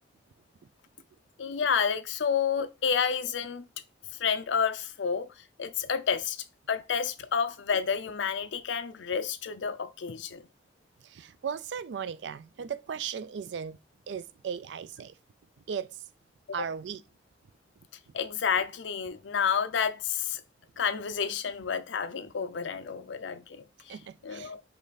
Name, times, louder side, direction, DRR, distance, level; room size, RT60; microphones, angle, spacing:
voice 1, 1.4-3.7 4.2-6.4 6.7-10.5 16.6-16.7 18.1-20.4 20.8-24.0 24.2-24.6, left 7 dB, 80° left, 0.5 m, -30 dB
voice 2, 11.0-13.8 14.1-15.2 15.7-16.0 16.5-17.0 23.9-24.5, right 7 dB, 70° right, 0.3 m, -37 dB
5.2 x 2.5 x 4.0 m
head